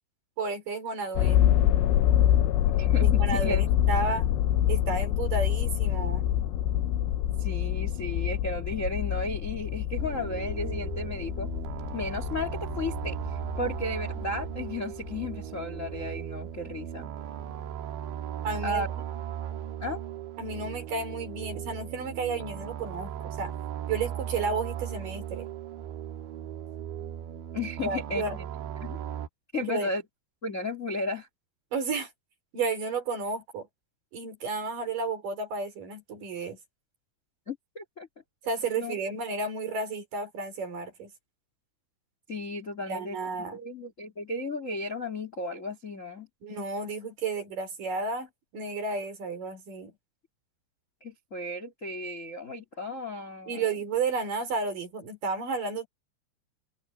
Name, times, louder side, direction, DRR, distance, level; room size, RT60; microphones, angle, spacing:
voice 1, 0.4-1.5 3.0-4.3 4.7-6.3 18.4-18.9 20.4-23.5 23.9-25.5 27.8-28.4 29.6-29.9 31.7-32.1 32.5-33.7 34.1-36.6 38.5-41.1 42.9-43.6 46.4-49.9 53.5-55.9, right 4 dB, 50° right, 5.8 m, -32 dB
sound 1, 1.2-15.3 15.9-16.0, left 12 dB, 75° left, 3.1 m, -26 dB
voice 2, 2.8-3.6 7.4-11.5 11.9-17.1 18.6-18.9 19.8-20.0 27.5-28.4 28.8-29.0 29.5-30.0 30.4-31.3 37.5-38.1 38.8-38.9 42.3-43.2 43.5-46.3 51.0-53.7, left 2 dB, 25° left, 2.0 m, -34 dB
sound 2, 10.0-29.3, right 10 dB, 75° right, 3.8 m, -37 dB
omnidirectional pair, 5.3 m